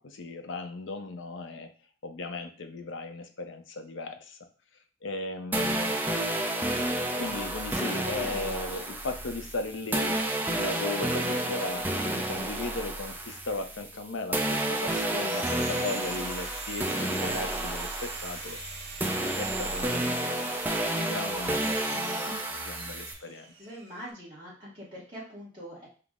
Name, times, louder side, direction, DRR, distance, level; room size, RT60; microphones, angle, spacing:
voice 1, 0.0-1.7 2.0-4.4 5.0-6.1 7.1-18.6 19.3-20.5 21.0-23.5, left 3 dB, 80° left, 7 dB, 0.6 m, -37 dB
sound 1, 5.5-14.0 14.3-23.1, right 1 dB, 10° right, 0.4 m, -31 dB
Sawing, 14.2-24.1, right 4 dB, 55° right, 1.0 m, -43 dB
voice 2, 23.6-25.9, equal, 25° right, -8 dB, 1.0 m, -43 dB
5.8 x 2.0 x 3.5 m, 0.40 s
head